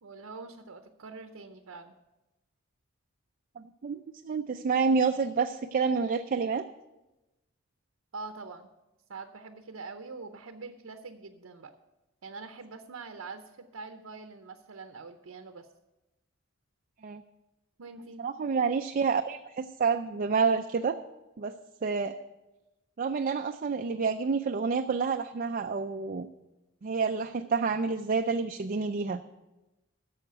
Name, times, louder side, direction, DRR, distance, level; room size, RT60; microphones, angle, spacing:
voice 1, 0.0-1.9 8.1-8.7 9.1-11.7 12.2-15.7 17.8-18.2, right 4 dB, 85° right, 7 dB, 0.7 m, -44 dB
voice 2, 3.6-4.0 4.2-6.6 17.0-17.2 18.2-21.0 21.4-21.5 21.8-22.1 23.0-26.3 26.8-29.2, right 5 dB, 40° right, 6 dB, 0.4 m, -28 dB
11.5 x 7.1 x 6.6 m, 1.0 s
head